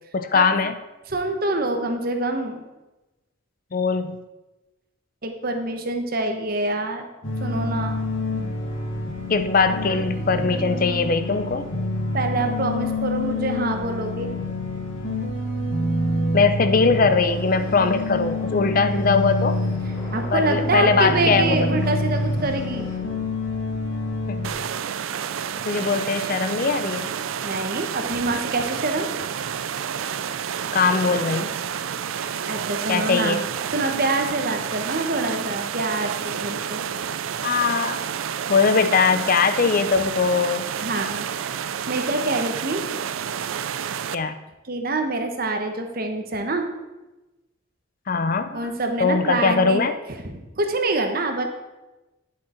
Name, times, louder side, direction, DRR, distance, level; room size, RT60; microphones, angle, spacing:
voice 1, 0.1-0.8 3.7-4.2 9.3-11.7 16.3-19.6 20.3-21.7 24.3-24.4 25.6-27.1 30.7-31.5 32.9-33.4 37.4-38.0 38.5-40.7 44.1-44.4 48.1-48.7 49.0-49.9, left 4 dB, 40° left, 10 dB, 0.5 m, -21 dB
voice 2, 1.1-2.6 5.2-7.1 7.4-8.0 12.1-14.3 20.1-22.9 27.4-29.1 32.5-33.4 33.7-36.9 40.8-41.5 41.9-42.8 44.7-46.6 48.5-49.8 50.2-51.5, right 2 dB, 45° right, 5 dB, 1.1 m, -26 dB
sound 1, 7.2-24.5, left 1 dB, 80° left, 2.6 m, -27 dB
sound 2, 16.7-23.0, left 1 dB, 15° left, 2.6 m, -42 dB
sound 3, 24.4-44.2, right 8 dB, 75° right, 0.4 m, -30 dB
10.5 x 7.6 x 4.4 m, 1.1 s
head